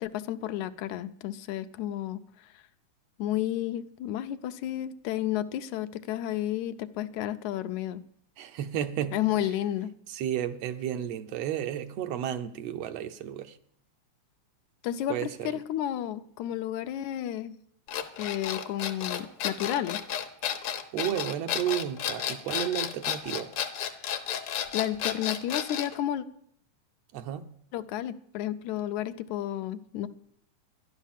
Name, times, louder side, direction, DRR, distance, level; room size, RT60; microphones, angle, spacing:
voice 1, 0.0-2.6 3.2-8.0 9.1-9.9 14.8-17.6 18.2-20.0 23.9-24.1 24.7-26.3 27.7-30.1, left 12 dB, 80° left, 2.0 m, -32 dB
voice 2, 8.4-9.1 10.1-13.6 15.1-15.5 20.4-23.5 27.1-27.5, right 10 dB, 70° right, 1.7 m, -32 dB
sound 1, 17.9-26.0, left 9 dB, 60° left, 1.7 m, -32 dB
13.0 x 11.0 x 7.3 m
omnidirectional pair, 3.4 m